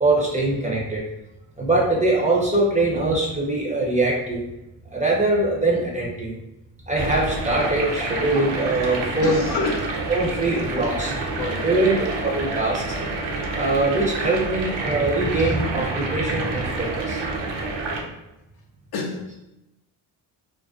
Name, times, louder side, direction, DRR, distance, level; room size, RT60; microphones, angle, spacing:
voice 1, 0.0-1.0 1.6-4.4 4.9-6.3 6.9-9.4 10.1-11.1 11.6-12.8 13.5-17.3, right 2 dB, 15° right, -3 dB, 0.6 m, -22 dB
sound 1, 6.9-18.0, right 3 dB, 60° right, 0.6 m, -28 dB
voice 2, 9.2-10.0 11.4-11.7 15.4-15.5 15.9-16.1 18.9-19.4, left 3 dB, 50° left, 2 dB, 0.5 m, -28 dB
2.4 x 2.2 x 2.3 m, 0.93 s
cardioid pair, 75°, 49 cm